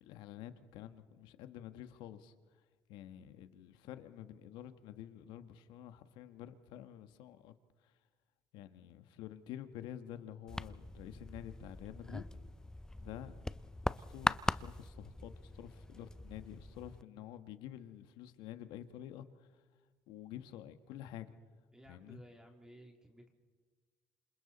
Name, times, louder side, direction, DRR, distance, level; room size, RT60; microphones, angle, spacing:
voice 1, 0.0-2.3 2.9-7.5 8.5-12.2 13.0-13.5 13.9-19.5 20.1-21.3 21.9-22.2, left 11 dB, 75° left, 1.5 m, -49 dB
sound 1, 10.5-17.0, left 1 dB, 10° left, 0.6 m, -40 dB
voice 2, 21.7-23.3, right 1 dB, 10° right, 2.9 m, -57 dB
29.0 x 27.0 x 4.2 m
supercardioid pair, 80°, 8 cm